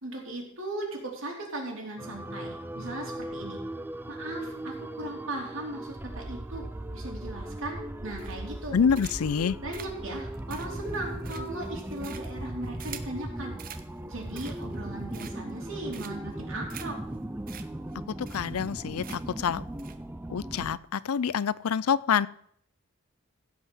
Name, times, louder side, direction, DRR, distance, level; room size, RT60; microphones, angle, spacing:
voice 1, 0.0-3.6 4.1-6.6 6.9-8.8 9.6-13.6 14.1-17.0, right 1 dB, 60° right, 3.2 m, -38 dB
sound 1, 2.0-20.8, right 1 dB, 10° right, 0.4 m, -38 dB
sound 2, 8.2-8.6 8.9-9.4 9.7-13.2 13.6-13.9 14.2-14.8 15.1-15.6 15.9-16.3 16.7-16.9 17.1-17.2 17.5-17.6 17.9-18.0 18.3-18.7 19.0-19.4 19.8-20.0, right 9 dB, 40° right, 0.8 m, -45 dB
voice 2, 8.7-9.6 18.3-19.0 19.4-19.6 20.3-22.3, left 7 dB, 75° left, 0.4 m, -26 dB
16.0 x 5.6 x 6.1 m
head